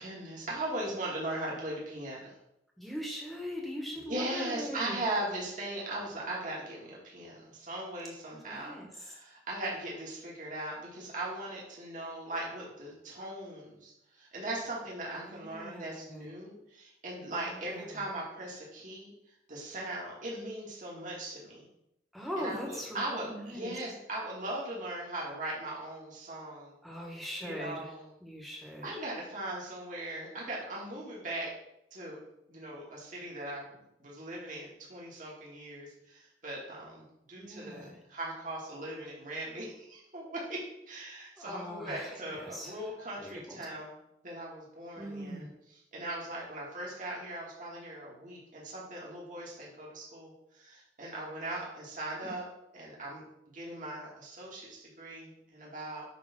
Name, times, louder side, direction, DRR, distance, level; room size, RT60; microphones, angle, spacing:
voice 1, 0.0-2.3 4.1-19.1 19.5-21.6 22.4-26.7 27.4-28.1 28.8-31.5 31.9-32.2 32.5-40.6 40.9-44.0 44.2-45.5 45.9-52.4 52.7-53.2 53.5-56.0, right 1 dB, 45° right, -4 dB, 2.2 m, -39 dB
voice 2, 2.8-5.0 8.3-8.9 15.2-16.3 17.5-18.0 22.1-23.8 26.8-27.9 28.2-29.0 37.4-38.0 41.4-42.7 43.2-43.7 45.0-45.5 52.2-52.3, equal, ahead, -1 dB, 1.6 m, -41 dB
9.2 x 3.8 x 6.0 m, 0.83 s
head